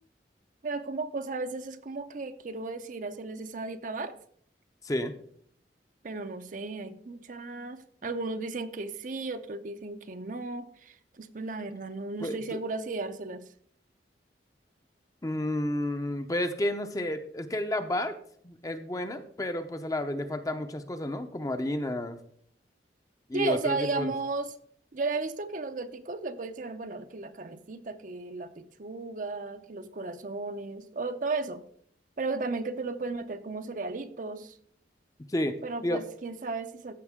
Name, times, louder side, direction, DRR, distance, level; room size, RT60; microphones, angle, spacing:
voice 1, 0.6-4.2 6.0-13.5 23.3-24.5 24.9-31.6 32.2-34.6 35.6-36.9, right 3 dB, 45° right, 10 dB, 0.5 m, -35 dB
voice 2, 12.2-12.6 15.2-18.2 18.4-22.2 23.3-24.1 35.3-35.6 35.8-36.0, left 1 dB, 20° left, 8 dB, 0.6 m, -31 dB
14.5 x 5.3 x 3.6 m, 0.62 s
head